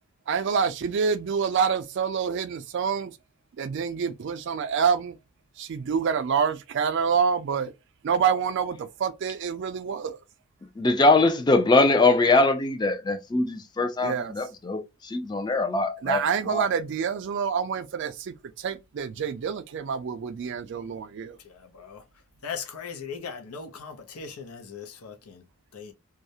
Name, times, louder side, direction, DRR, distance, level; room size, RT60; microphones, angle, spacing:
voice 1, 0.3-3.1 3.6-5.1 5.6-7.7 8.0-10.2 14.0-14.3 16.0-21.4, right 6 dB, 55° right, 0.3 m, -27 dB
voice 2, 10.8-14.8 15.1-16.2 16.5-16.6, left 3 dB, 20° left, 0.3 m, -22 dB
voice 3, 21.4-22.0 22.4-25.4 25.7-25.9, left 6 dB, 85° left, 0.6 m, -39 dB
2.3 x 2.0 x 2.7 m
head